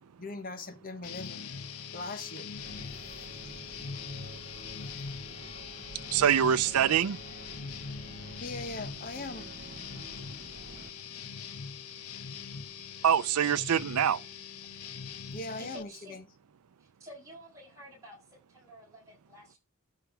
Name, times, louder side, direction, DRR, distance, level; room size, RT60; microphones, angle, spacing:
voice 1, 0.2-1.5 1.9-2.5 8.4-9.5 15.3-16.2, left 2 dB, 40° left, 1.2 m, -40 dB
sound 1, 1.0-15.8, left 6 dB, 80° left, 0.9 m, -42 dB
sound 2, 2.6-10.9, right 2 dB, 40° right, 0.7 m, -49 dB
voice 2, 6.1-7.2 13.0-14.2, right 9 dB, 90° right, 0.5 m, -24 dB
voice 3, 15.6-16.2 16.8-19.6, equal, 15° right, 7.0 m, -50 dB
13.0 x 4.6 x 5.0 m
head